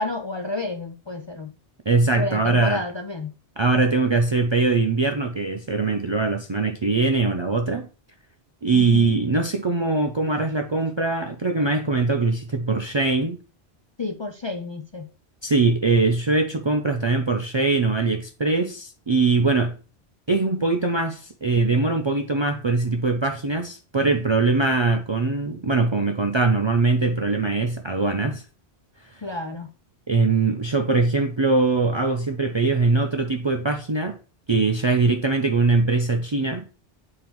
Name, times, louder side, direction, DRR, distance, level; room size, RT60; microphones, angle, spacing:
voice 1, 0.0-1.5 2.2-3.3 8.7-9.1 14.0-15.1 29.2-29.7, left 2 dB, 40° left, 0.4 m, -30 dB
voice 2, 1.9-2.8 3.6-7.9 8.6-13.4 15.4-19.7 20.3-28.4 29.0-29.2 30.1-34.2 34.5-36.6, right 3 dB, 40° right, 0.4 m, -22 dB
8.6 x 3.6 x 3.0 m
omnidirectional pair, 1.1 m